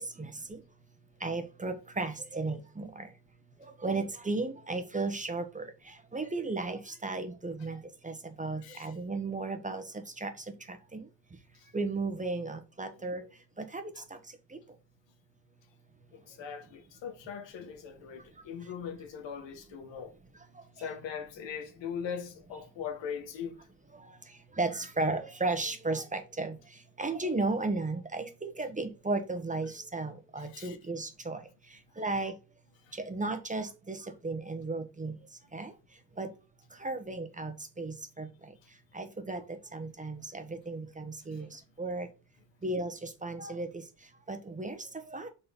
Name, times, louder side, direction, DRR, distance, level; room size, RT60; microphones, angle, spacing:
voice 1, 1.2-3.1 3.8-5.6 6.1-8.1 8.4-9.8 10.2-10.3 11.7-13.2 13.7-13.8 24.6-26.5 27.0-31.4 32.0-32.3 33.1-34.0 34.2-35.1 35.5-35.7 36.2-36.3 36.8-38.3 38.9-39.4 39.7-41.5 41.8-42.1 42.6-43.7 44.3-44.8 45.1-45.3, right 3 dB, 15° right, 1.2 m, -34 dB
voice 2, 8.6-9.0 11.5-11.7 14.0-14.1 16.1-20.1 20.8-23.6 30.4-30.8 32.0-32.1 32.8-33.0 41.3-41.4, left 7 dB, 85° left, 1.7 m, -41 dB
6.7 x 4.3 x 5.3 m
cardioid pair, 125°, 43 cm